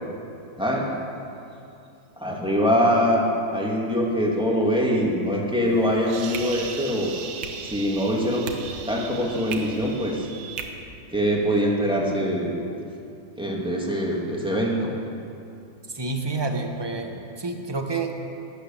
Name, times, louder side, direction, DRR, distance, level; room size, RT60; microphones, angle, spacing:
voice 1, 0.6-0.9 2.2-7.1 7.6-8.5 8.9-10.3 11.1-12.6 13.4-14.9, equal, 5° right, -3 dB, 2.1 m, -23 dB
sound 1, 5.6-10.7, right 6 dB, 85° right, 2.0 m, -37 dB
voice 2, 15.9-18.1, right 3 dB, 20° right, 4 dB, 0.8 m, -29 dB
18.0 x 10.5 x 7.1 m, 2.6 s
omnidirectional pair, 2.1 m